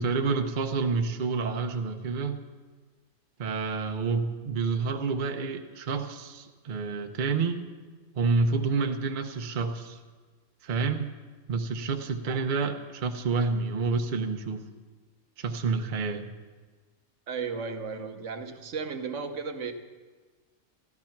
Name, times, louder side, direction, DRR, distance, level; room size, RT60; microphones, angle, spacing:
voice 1, 0.0-2.4 3.4-7.6 8.1-10.0 10.6-11.1 11.5-14.6 15.4-16.3, right 4 dB, 45° right, 5 dB, 0.9 m, -28 dB
voice 2, 17.3-19.7, right 5 dB, 70° right, 7 dB, 1.2 m, -35 dB
13.0 x 12.0 x 5.9 m, 1.4 s
omnidirectional pair, 1.4 m